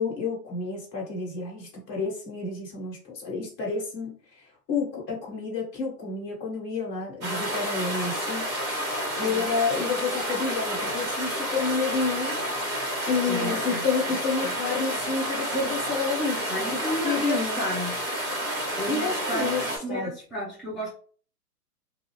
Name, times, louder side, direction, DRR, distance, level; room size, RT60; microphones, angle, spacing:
voice 1, 0.0-4.1 4.7-8.4 9.1-12.3 13.1-16.4 16.7-16.8 17.0-17.6 18.9-20.1, left 5 dB, 30° left, -2 dB, 1.4 m, -29 dB
sound 1, 7.2-19.8, equal, 20° right, 1.4 m, -30 dB
voice 2, 9.1-9.4 13.2-13.8 14.4-14.8 15.5-15.7 16.5-17.9 18.8-20.9, right 1 dB, ahead, -11 dB, 0.7 m, -32 dB
2.6 x 2.3 x 3.1 m, 0.44 s
hypercardioid pair, 125°, 49 cm